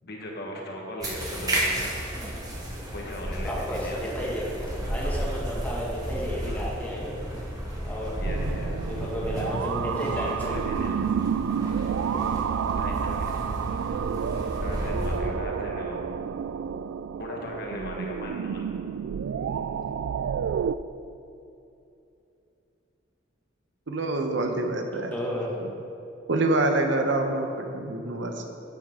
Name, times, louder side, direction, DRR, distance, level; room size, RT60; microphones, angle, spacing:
voice 1, 0.0-2.0 2.9-4.2 5.0-5.4 6.5-6.7 8.2-8.9 10.1-11.1 12.7-13.4 14.5-16.1 17.1-18.7, left 1 dB, 55° left, -1 dB, 1.5 m, -38 dB
sound 1, 1.0-15.2, equal, 20° right, 1.6 m, -33 dB
voice 2, 3.4-7.1 7.8-8.1 8.8-10.6 25.1-25.5, equal, 10° left, -5 dB, 2.0 m, -32 dB
sound 2, 8.2-20.8, right 7 dB, 85° right, 0.3 m, -30 dB
voice 3, 23.9-25.1 25.6-25.7 26.3-28.5, right 2 dB, 70° right, 4 dB, 0.9 m, -26 dB
10.5 x 8.5 x 3.8 m, 2.8 s
head